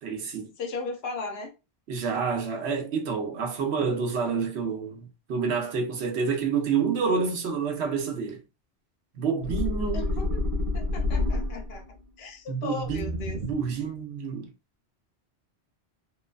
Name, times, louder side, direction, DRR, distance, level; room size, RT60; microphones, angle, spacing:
voice 1, 0.0-0.5 1.9-8.4 9.1-10.1 12.5-14.5, right 5 dB, 70° right, 1.0 m, -28 dB
voice 2, 0.6-1.5 9.9-10.4 10.7-11.8 12.2-13.4, left 3 dB, 70° left, 0.8 m, -36 dB
sound 1, 9.4-11.9 12.8-13.8, left 2 dB, 35° right, 0.6 m, -29 dB
3.0 x 2.3 x 2.2 m
omnidirectional pair, 1.1 m